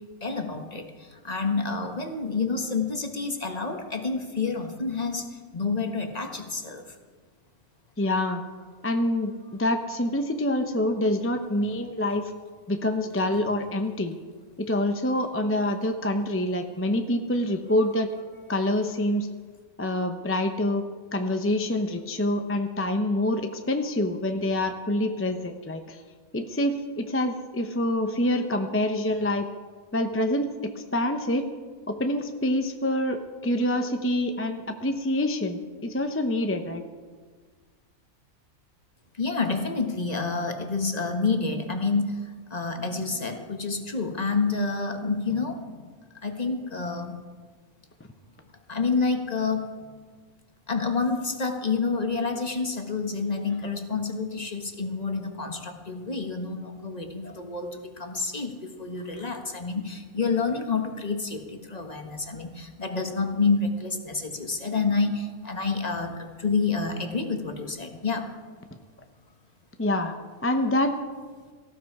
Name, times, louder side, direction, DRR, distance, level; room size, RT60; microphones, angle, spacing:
voice 1, 0.0-6.8 39.1-45.9 46.2-47.2 48.7-49.7 50.7-68.3, left 4 dB, 30° left, 4 dB, 1.4 m, -28 dB
voice 2, 8.0-8.4 8.8-12.2 12.7-14.1 14.6-18.1 18.5-19.3 19.8-20.8 21.1-26.0 26.3-29.4 29.9-31.4 31.9-36.8 57.2-57.4 69.8-70.1 70.4-71.0, left 1 dB, 15° left, 6 dB, 0.5 m, -26 dB
18.0 x 15.0 x 4.8 m, 1.5 s
omnidirectional pair, 1.4 m